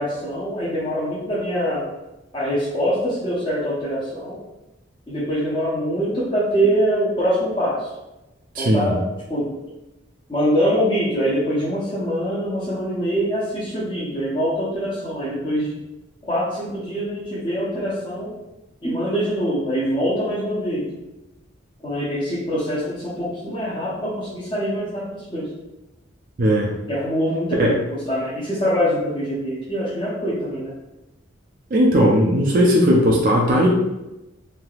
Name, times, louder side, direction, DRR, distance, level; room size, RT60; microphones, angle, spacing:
voice 1, 0.0-1.8 2.3-4.4 5.1-7.9 8.5-9.0 9.3-9.5 10.3-15.7 16.2-18.3 18.8-20.9 21.8-25.5 26.9-30.7, equal, 25° left, -11 dB, 0.7 m, -24 dB
voice 2, 8.6-9.0 26.4-26.7 27.6-27.8 31.7-33.7, equal, 45° right, -3 dB, 0.4 m, -17 dB
3.3 x 2.8 x 2.3 m, 0.97 s
head